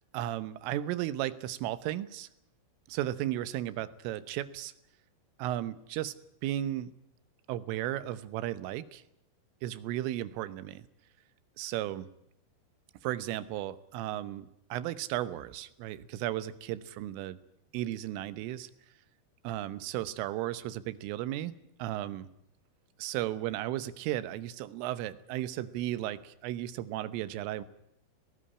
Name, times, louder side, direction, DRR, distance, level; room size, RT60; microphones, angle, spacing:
voice 1, 0.1-2.3 2.9-4.7 5.4-6.2 6.4-6.9 7.5-9.0 9.6-10.9 11.6-12.1 13.0-17.4 17.7-18.7 19.5-22.3 23.0-27.6, right 13 dB, 85° right, 14 dB, 3.6 m, -35 dB
19.0 x 18.0 x 9.8 m, 0.77 s
omnidirectional pair, 5.6 m